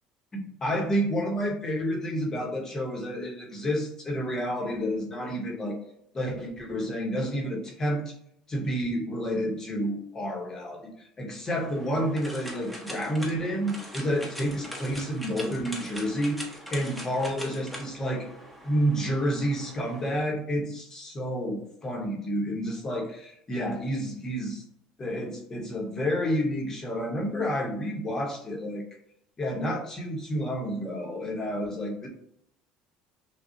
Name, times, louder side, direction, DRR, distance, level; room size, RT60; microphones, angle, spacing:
voice 1, 0.3-5.8 6.1-8.0 8.5-18.3 18.6-24.6 25.0-28.8 29.4-32.1, equal, 25° left, 0 dB, 1.0 m, -30 dB
sound 1, 11.5-20.2, equal, ahead, 0.9 m, -42 dB
6.1 x 2.3 x 2.7 m, 0.73 s
cardioid pair, 130°, 2 cm